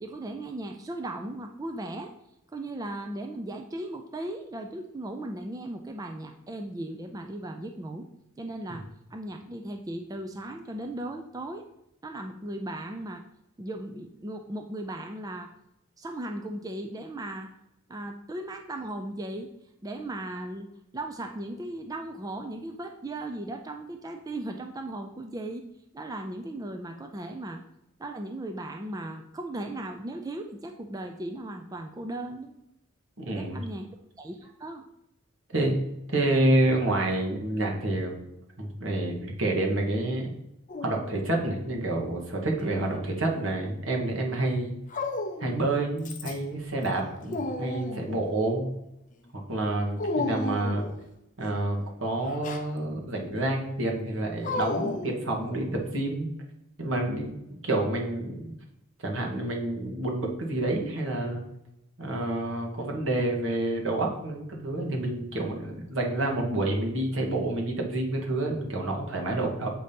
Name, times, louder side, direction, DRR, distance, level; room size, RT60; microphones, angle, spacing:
voice 1, 0.0-2.1 2.5-8.1 8.4-8.8 9.1-11.6 12.0-13.2 13.6-15.5 16.0-17.5 17.9-19.5 19.8-20.7 20.9-25.6 25.9-27.6 28.0-32.5 33.3-33.9 34.2-34.8, right 1 dB, 15° right, 4 dB, 0.3 m, -37 dB
voice 2, 33.2-33.6 35.5-35.7 36.1-38.2 38.6-40.3 40.8-44.7 45.4-48.7 49.5-50.8 51.4-56.3 56.8-57.3 57.6-58.5 59.0-61.4 62.0-69.7, right 2 dB, 65° right, 1 dB, 1.4 m, -28 dB
Dog, 40.7-41.5 42.6-43.5 44.9-45.6 46.0-46.6 46.9-48.3 50.0-51.0 52.2-52.7 54.4-55.8, left 2 dB, 35° left, 0.6 m, -34 dB
7.5 x 2.8 x 5.1 m, 0.84 s
head